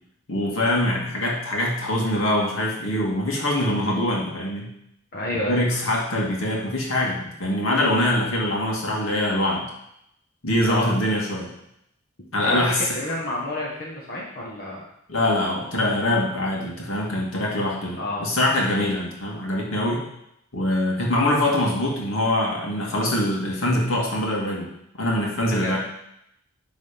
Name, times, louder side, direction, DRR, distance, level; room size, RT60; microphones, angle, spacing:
voice 1, 0.3-4.7 5.4-9.6 10.4-11.5 12.3-12.8 15.1-20.0 20.5-24.7 25.0-25.8, left 1 dB, 70° left, -2 dB, 2.2 m, -23 dB
voice 2, 5.1-5.8 10.7-10.9 12.4-14.9 18.0-18.3 18.7-19.0 25.5-25.8, left 1 dB, 50° left, -5 dB, 1.6 m, -30 dB
11.5 x 4.0 x 5.2 m, 0.78 s
head